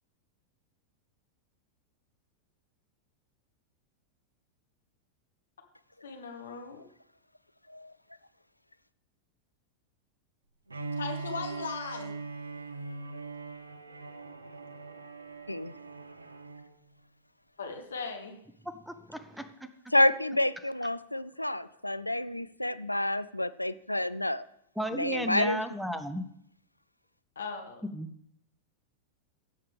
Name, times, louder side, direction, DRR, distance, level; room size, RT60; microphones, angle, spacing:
voice 1, 6.0-6.8 10.9-12.1 17.6-18.4 27.3-27.9, left 5 dB, 70° left, 5 dB, 1.2 m, -38 dB
Bowed string instrument, 10.7-16.7, right 4 dB, 80° right, 0.6 m, -41 dB
voice 2, 18.6-19.7 24.8-26.2 27.9-28.1, equal, ahead, 11 dB, 0.7 m, -35 dB
voice 3, 19.9-24.4 24.9-25.6, left 1 dB, 85° left, 14 dB, 0.3 m, -29 dB
16.0 x 6.6 x 3.5 m, 0.71 s
figure-of-eight pair, 90°, 0 cm